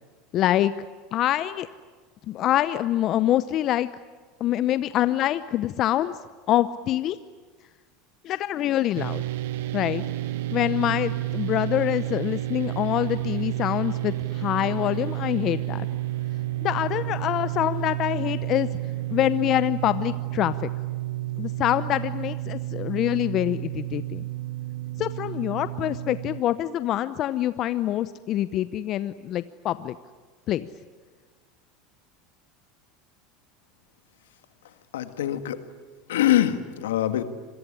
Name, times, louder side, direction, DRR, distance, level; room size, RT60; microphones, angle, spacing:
voice 1, 0.3-0.7 1.1-1.7 2.3-3.9 4.4-6.1 6.5-7.2 8.2-9.2 9.7-10.0 10.5-15.9 16.6-18.7 19.1-20.7 21.4-24.2 25.0-29.9 30.5-30.7, left 13 dB, 50° left, 14 dB, 0.8 m, -25 dB
sound 1, 9.0-26.4, right 16 dB, 75° right, 1.1 m, -31 dB
voice 2, 34.9-35.6 36.1-37.2, left 12 dB, 80° left, 10 dB, 1.8 m, -23 dB
26.0 x 22.5 x 10.0 m, 1.4 s
hypercardioid pair, 85°, 0 cm